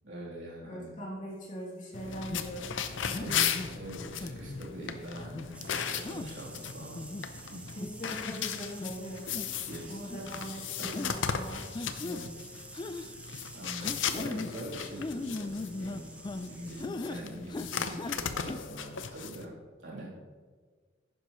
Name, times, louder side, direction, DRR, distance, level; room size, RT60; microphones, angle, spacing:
voice 1, 0.0-0.9 3.0-7.0 7.3-7.6 8.1-8.2 9.6-11.0 12.0-12.4 12.6-13.2 13.5-19.5 19.8-20.2, right 1 dB, 85° right, -5 dB, 3.3 m, -44 dB
voice 2, 0.7-2.7 3.0-3.2 7.7-9.3 9.9-11.7 12.1-12.3, equal, 45° left, -5 dB, 2.7 m, -41 dB
sound 1, 1.9-19.4, left 7 dB, 85° left, 0.6 m, -37 dB
sound 2, 2.3-2.5 3.1-3.7 4.2-4.7 5.2-5.5 6.0-6.3 6.8-7.3 7.8-7.9 8.2-8.5 8.8-8.9 9.3-9.7 10.0-10.2 10.9-11.1 11.7-12.2 12.7-13.1 13.8-14.5 15.0-16.5 16.8-17.2 17.5-18.2 18.4-18.6, left 2 dB, 25° left, 0.4 m, -38 dB
sound 3, 5.5-16.9, right 2 dB, 5° right, 0.7 m, -50 dB
11.0 x 9.9 x 3.1 m, 1.5 s
head